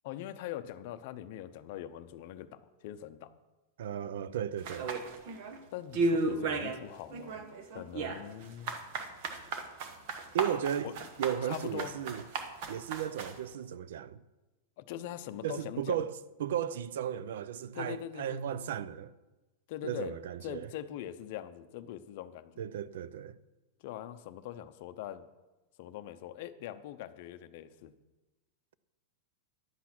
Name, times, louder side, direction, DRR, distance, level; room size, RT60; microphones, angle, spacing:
voice 1, 0.0-3.3 5.7-7.4 7.7-8.7 10.8-11.1 11.4-11.9 14.8-16.1 17.7-18.4 19.7-20.2 20.4-22.6 23.8-25.3 25.8-27.9, left 12 dB, 45° left, 0.7 m, -42 dB
voice 2, 3.8-4.9 10.3-10.9 11.2-12.2 12.7-14.2 15.4-19.1 19.8-20.7 22.6-23.4, right 9 dB, 70° right, 0.6 m, -35 dB
sound 1, 4.6-5.6 5.9-6.8 7.1-13.4, right 3 dB, 40° right, 1.2 m, -34 dB
11.0 x 8.3 x 6.0 m
supercardioid pair, 175°, 0 cm